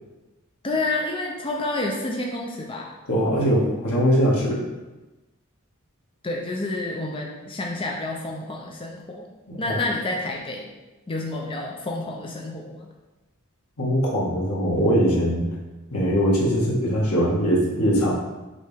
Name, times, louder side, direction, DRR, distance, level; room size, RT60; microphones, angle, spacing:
voice 1, 0.6-2.9 6.2-9.3 9.6-10.7 11.1-12.9, left 2 dB, 25° left, -1 dB, 0.5 m, -29 dB
voice 2, 3.1-4.6 9.5-9.8 13.8-15.4 15.9-18.1, equal, 80° left, -4 dB, 1.8 m, -21 dB
6.5 x 4.3 x 3.4 m, 1.1 s
head